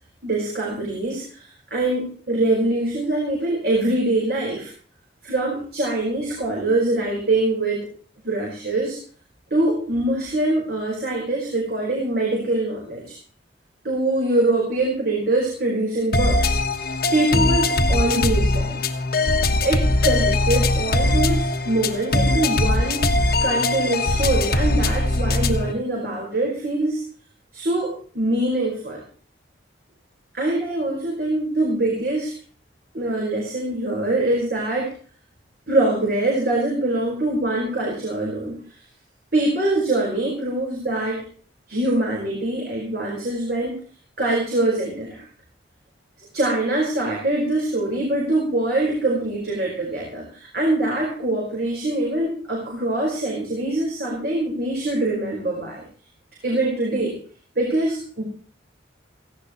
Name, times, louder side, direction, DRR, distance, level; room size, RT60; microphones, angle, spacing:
voice 1, 0.2-4.7 5.2-7.9 8.2-9.0 9.5-13.2 13.8-16.6 17.1-18.8 19.6-23.0 23.4-27.0 27.5-29.0 30.3-32.3 32.9-34.9 35.7-38.6 39.3-41.2 41.7-43.8 44.2-45.2 46.3-55.8 56.4-57.2 57.5-58.2, right 2 dB, 55° right, -2 dB, 5.0 m, -23 dB
sound 1, 16.1-25.7, left 2 dB, 50° left, 1.3 m, -21 dB
17.5 x 16.0 x 3.1 m, 0.43 s
head